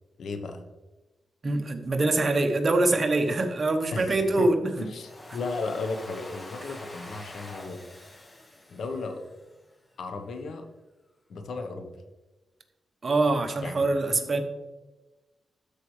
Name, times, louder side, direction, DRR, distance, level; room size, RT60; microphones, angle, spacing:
voice 1, 0.2-0.6 3.9-4.5 4.8-7.8 8.7-9.2 10.0-10.7 11.3-11.9 13.6-13.8 14.1-14.3, left 3 dB, 70° left, 6 dB, 0.9 m, -35 dB
voice 2, 1.4-4.7 13.0-14.4, right 2 dB, 40° right, 6 dB, 1.0 m, -24 dB
Domestic sounds home sounds, 4.8-9.7, left 1 dB, 25° left, 1.1 m, -45 dB
12.5 x 4.8 x 3.2 m, 1.1 s
cardioid pair, 90°, 0 cm